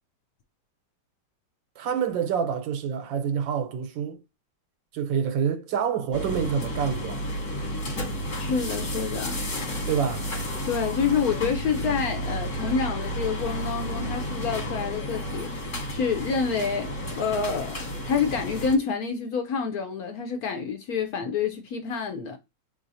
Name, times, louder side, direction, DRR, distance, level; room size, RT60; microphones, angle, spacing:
voice 1, 1.8-4.2 4.9-7.2 9.9-10.3, right 7 dB, 85° right, 1.4 m, -27 dB
sound 1, 6.1-18.8, equal, 45° left, 1.3 m, -32 dB
voice 2, 8.4-9.4 10.7-22.4, left 6 dB, 70° left, 0.9 m, -28 dB
5.0 x 3.1 x 2.7 m
omnidirectional pair, 2.0 m